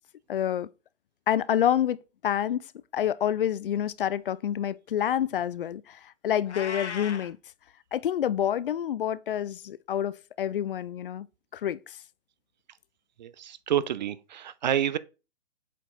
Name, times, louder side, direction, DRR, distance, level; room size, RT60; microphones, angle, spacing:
voice 1, 0.3-0.7 1.3-2.7 2.9-7.4 7.9-11.3 11.5-12.0, left 10 dB, 50° left, 0.4 m, -28 dB
Meow, 6.5-7.3, left 5 dB, 70° left, 1.4 m, -36 dB
voice 2, 13.2-15.0, right 10 dB, 40° right, 0.5 m, -28 dB
7.3 x 4.5 x 3.8 m
figure-of-eight pair, 130°, 35 cm